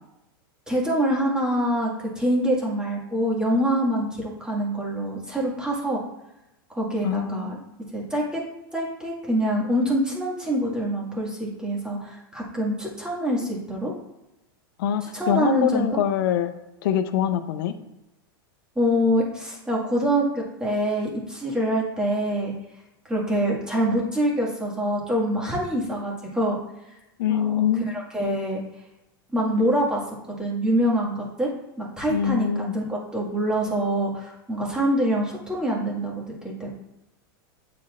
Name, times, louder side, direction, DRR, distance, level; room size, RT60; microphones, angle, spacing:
voice 1, 0.7-6.0 6.7-7.6 7.9-8.4 8.7-13.9 15.1-16.0 18.8-22.5 23.1-26.6 27.3-27.5 28.1-28.6 29.3-30.0 30.4-31.5 31.8-36.7, equal, 5° right, -3 dB, 1.9 m, -25 dB
voice 2, 7.0-7.5 14.8-16.5 16.8-17.7 27.2-27.9 32.1-32.7, left 9 dB, 65° left, 9 dB, 0.7 m, -24 dB
9.4 x 4.3 x 2.5 m, 0.93 s
hypercardioid pair, 125°, 12 cm